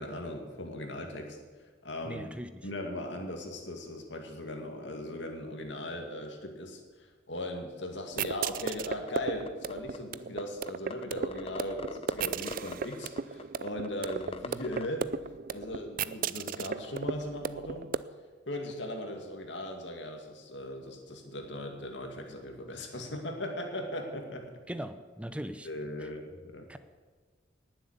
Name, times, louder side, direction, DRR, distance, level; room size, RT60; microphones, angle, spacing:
voice 1, 0.0-1.4 1.8-2.3 2.6-15.1 15.5-17.9 18.5-24.6 25.6-26.7, left 1 dB, 70° left, 3 dB, 2.3 m, -38 dB
voice 2, 2.0-2.7 24.7-25.7 26.0-26.1 26.7-26.8, equal, 5° right, 10 dB, 0.8 m, -40 dB
sound 1, 8.1-18.0, right 6 dB, 45° right, 0.4 m, -36 dB
sound 2, 9.1-9.2 9.5-10.0 10.4-10.5 10.7-11.0 11.3-14.9, left 3 dB, 30° left, 0.6 m, -40 dB
19.0 x 7.8 x 8.2 m, 1.4 s
head